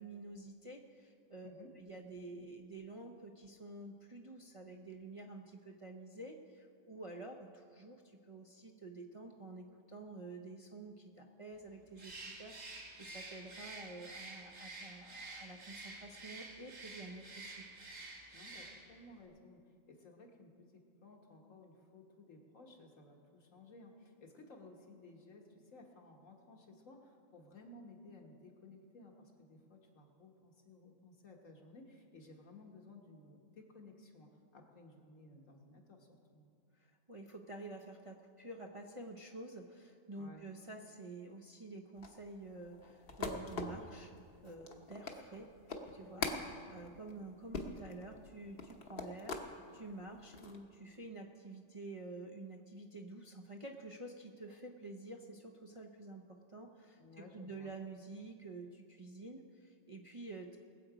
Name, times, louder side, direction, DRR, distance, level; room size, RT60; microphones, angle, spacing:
voice 1, 0.0-17.6 36.7-44.1 44.4-45.5 45.9-46.2 46.7-49.4 49.7-60.6, right 2 dB, 30° right, 0 dB, 0.6 m, -49 dB
Bird, 12.0-19.0, right 2 dB, 65° right, 2.1 m, -50 dB
voice 2, 18.3-36.5 40.2-40.5 46.1-46.5 57.0-57.7, left 2 dB, 70° left, 1 dB, 1.8 m, -57 dB
sound 1, 42.0-49.5 50.0-50.6, left 3 dB, 45° left, 1.1 m, -43 dB
20.5 x 7.8 x 5.0 m, 2.2 s
omnidirectional pair, 1.4 m